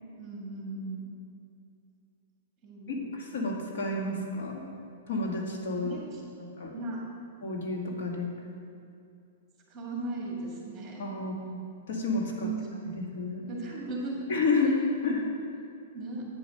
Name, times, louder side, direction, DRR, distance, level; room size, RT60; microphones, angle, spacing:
voice 1, 0.2-1.0 2.6-3.1 5.8-6.2 6.7-7.0 9.7-11.0 12.4-12.7 13.5-14.3 15.1-15.2 15.9-16.3, right 2 dB, 15° right, -2 dB, 2.1 m, -37 dB
voice 2, 3.0-4.6 5.1-6.0 6.4-6.7 7.4-8.3 11.0-12.5 12.9-13.4 14.3-14.8 15.0-15.2, left 3 dB, 65° left, 0 dB, 1.6 m, -30 dB
9.1 x 5.4 x 6.6 m, 2.6 s
hypercardioid pair, 155°, 0 cm